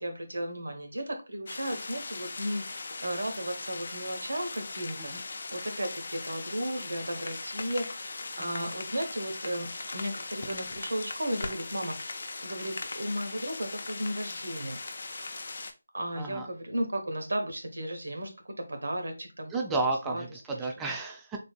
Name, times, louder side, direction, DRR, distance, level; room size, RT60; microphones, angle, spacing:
voice 1, 0.0-5.1 5.5-15.5 15.9-19.5 20.0-20.7, right 1 dB, 65° right, 5 dB, 1.1 m, -35 dB
sound 1, 1.5-15.7, left 3 dB, 50° left, 0.5 m, -39 dB
voice 2, 8.4-8.7 16.2-16.5 19.5-21.4, right 3 dB, 10° right, 1 dB, 0.4 m, -32 dB
3.7 x 3.5 x 2.2 m, 0.30 s
figure-of-eight pair, 155°, 0 cm